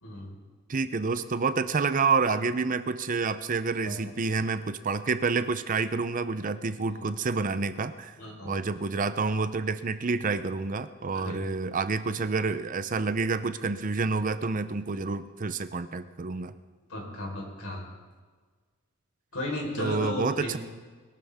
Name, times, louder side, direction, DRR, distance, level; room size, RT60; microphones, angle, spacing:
voice 1, 0.7-8.2 8.5-16.5 19.8-20.6, right 4 dB, 40° right, 12 dB, 0.6 m, -28 dB
voice 2, 8.2-8.5 11.1-11.8 16.9-17.8 19.3-20.6, left 1 dB, 80° left, -1 dB, 4.2 m, -35 dB
21.5 x 12.5 x 3.6 m, 1.4 s
head